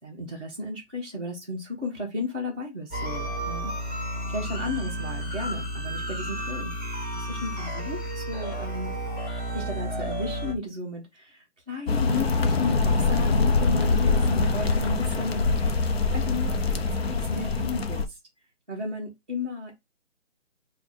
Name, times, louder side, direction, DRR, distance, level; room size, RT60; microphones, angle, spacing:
voice 1, 0.0-4.0 4.3-9.0 9.5-16.6 16.9-18.2 18.7-19.7, left 3 dB, 10° right, 0.6 m, -34 dB
sound 1, 2.9-10.5, right 1 dB, 15° left, 1.3 m, -32 dB
sound 2, 11.9-18.1, left 3 dB, 55° left, 0.7 m, -24 dB
3.1 x 2.2 x 4.1 m
hypercardioid pair, 165°, 36 cm